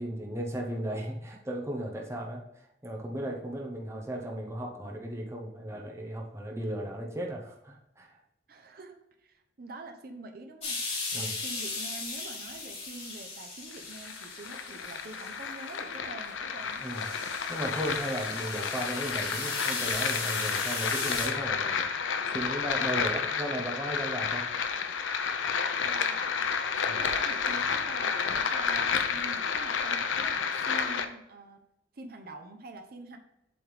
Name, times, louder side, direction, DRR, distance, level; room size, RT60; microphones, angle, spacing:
voice 1, 0.0-2.4 2.8-8.2 11.1-11.3 16.8-17.1 17.5-21.8 22.3-24.5 26.9-27.0, right 1 dB, 15° right, -1 dB, 0.9 m, -35 dB
voice 2, 8.5-16.8 25.8-26.5 26.8-31.6 31.9-33.2, right 2 dB, 55° right, 4 dB, 0.8 m, -46 dB
sound 1, 10.6-15.8 16.3-16.4 16.8-21.3, left 3 dB, 40° left, 2.7 m, -37 dB
sound 2, 13.7-31.1, left 6 dB, 90° left, 0.6 m, -31 dB
7.8 x 3.6 x 4.9 m, 0.84 s
head